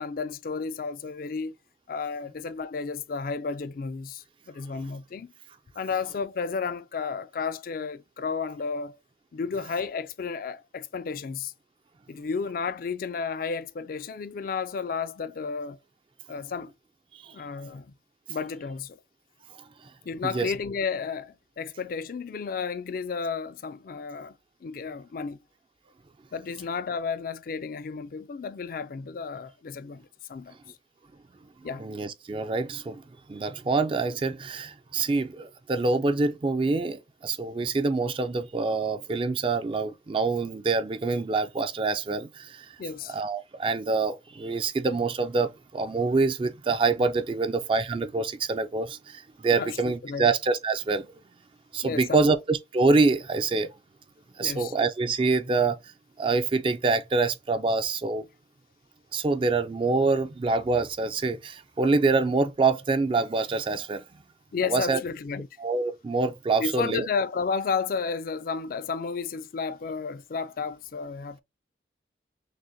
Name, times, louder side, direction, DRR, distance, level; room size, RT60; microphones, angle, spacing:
voice 1, 0.0-1.5 1.9-5.3 5.8-9.0 9.3-11.5 12.1-15.8 16.3-16.7 17.3-17.9 18.3-19.0 20.1-24.3 24.6-25.4 26.3-30.6 31.6-31.8 42.8-43.2 49.6-50.3 51.8-52.3 54.4-54.8 64.5-65.5 66.6-71.4, left 5 dB, 50° left, 0.3 m, -32 dB
voice 2, 31.8-32.9 33.3-42.3 43.1-45.5 45.7-49.0 49.4-51.0 51.7-53.7 54.4-55.8 56.2-58.2 59.1-64.0 64.7-65.0 65.6-67.1, right 3 dB, 30° right, 0.3 m, -25 dB
6.3 x 2.1 x 2.6 m
head